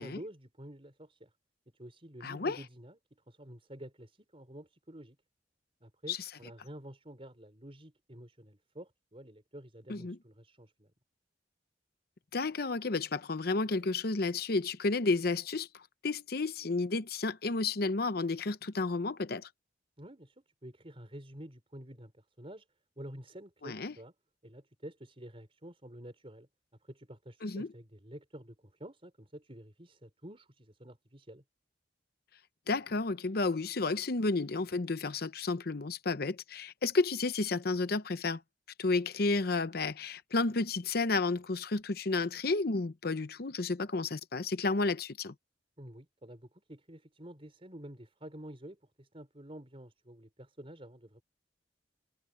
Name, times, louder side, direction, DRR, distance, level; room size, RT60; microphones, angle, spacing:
voice 1, 0.0-1.3 1.7-5.2 5.8-10.9 20.0-22.7 23.0-24.1 24.4-26.5 26.8-31.4 45.8-51.2, right 1 dB, 30° right, 4.6 m, -49 dB
voice 2, 2.2-2.6 6.1-6.2 9.9-10.2 12.3-19.5 23.6-23.9 27.4-27.7 32.7-38.4 38.8-45.3, left 3 dB, 60° left, 0.8 m, -31 dB
head